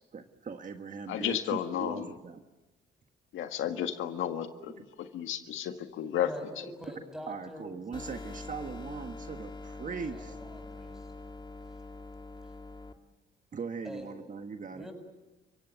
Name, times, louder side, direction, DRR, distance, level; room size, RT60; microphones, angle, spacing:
voice 1, 0.1-2.4 7.3-10.4 13.5-14.9, right 5 dB, 40° right, 6 dB, 1.4 m, -40 dB
voice 2, 1.1-2.1 3.3-4.7 5.0-6.3, left 10 dB, 85° left, 7 dB, 1.7 m, -32 dB
voice 3, 6.2-7.7 10.1-11.1 12.4-12.5 13.8-14.1 14.7-14.9, equal, ahead, 5 dB, 8.0 m, -44 dB
sound 1, 7.9-12.9, left 3 dB, 25° left, 2.1 m, -44 dB
30.0 x 17.0 x 9.4 m, 1.1 s
cardioid pair, 90°, 20 cm